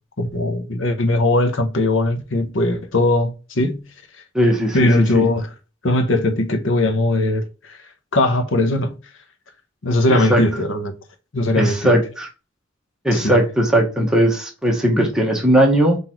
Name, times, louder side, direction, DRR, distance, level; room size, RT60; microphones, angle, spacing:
voice 1, 0.2-3.9 4.7-5.5 5.8-7.8 8.1-9.0 9.8-10.9 11.3-11.9 13.1-13.4, left 2 dB, 75° left, 0.9 m, -19 dB
voice 2, 4.3-5.2 10.1-10.4 11.5-12.3 13.0-16.0, right 1 dB, 5° right, 1.2 m, -18 dB
4.0 x 2.7 x 4.4 m
head